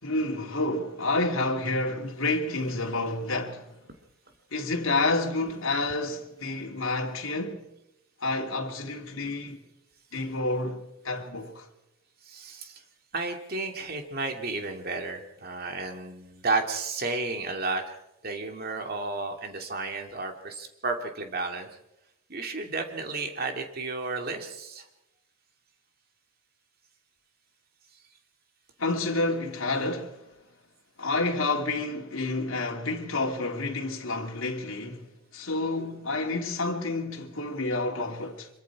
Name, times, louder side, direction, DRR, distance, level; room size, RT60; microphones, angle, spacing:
voice 1, 0.0-3.7 4.5-7.7 8.2-9.6 10.1-11.7 28.8-30.3 31.0-38.5, left 2 dB, 70° left, 2.8 m, -29 dB
voice 2, 12.3-12.8 13.1-17.9 18.2-21.7 22.3-24.9, right 3 dB, 45° right, 2.6 m, -32 dB
26.0 x 23.0 x 4.9 m
head